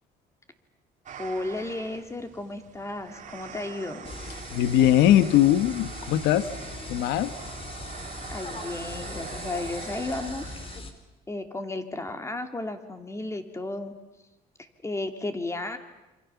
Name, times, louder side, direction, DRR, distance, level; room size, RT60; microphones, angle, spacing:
sound 1, 1.1-10.8, right 7 dB, 45° right, 2.5 m, -43 dB
voice 1, 1.2-4.1 8.3-10.5 11.3-13.9 14.8-15.8, left 2 dB, 15° left, 7 dB, 2.8 m, -33 dB
sound 2, 4.0-10.9, left 3 dB, 35° left, 3.3 m, -40 dB
voice 2, 4.5-6.5 6.9-7.3, left 12 dB, 90° left, 13 dB, 1.3 m, -20 dB
27.5 x 26.5 x 7.1 m, 1.0 s
cardioid pair, 110°, 17 cm